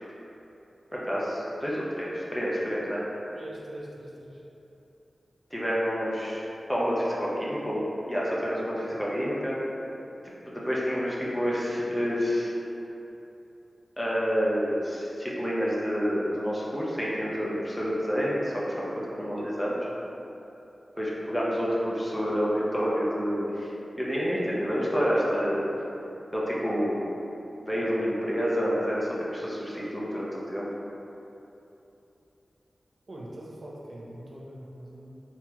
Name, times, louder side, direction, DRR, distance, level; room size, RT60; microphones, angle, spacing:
voice 1, 0.9-3.0 5.5-6.4 6.7-9.6 10.5-12.5 14.0-18.9 19.2-19.9 21.0-23.7 24.0-25.7 26.3-27.0 27.6-30.7, equal, 10° left, -6 dB, 0.6 m, -28 dB
voice 2, 3.4-4.4 33.1-35.2, right 1 dB, 55° right, -4 dB, 0.5 m, -42 dB
3.5 x 2.9 x 2.9 m, 3.0 s
wide cardioid pair, 100°, 0 cm